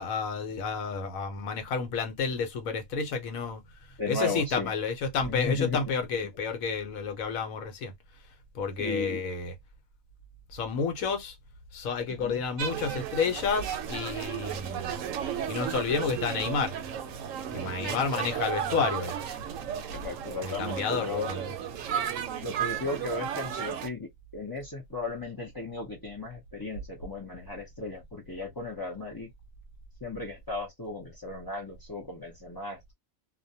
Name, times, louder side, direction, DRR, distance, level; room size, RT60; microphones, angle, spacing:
voice 1, 0.0-3.6 3.9-7.9 8.5-9.5 10.5-11.4 11.7-15.0 15.5-16.7 17.5-19.2 20.4-21.5, left 5 dB, 75° left, 1.1 m, -30 dB
voice 2, 4.0-4.7 5.3-5.8 8.8-9.2 12.1-12.4 17.8-18.0 19.9-21.3 22.4-24.1 24.3-29.3 30.0-32.9, left 3 dB, 35° left, 0.3 m, -35 dB
sound 1, 12.6-23.9, right 9 dB, 70° right, 0.9 m, -34 dB
2.5 x 2.1 x 2.6 m
omnidirectional pair, 1.5 m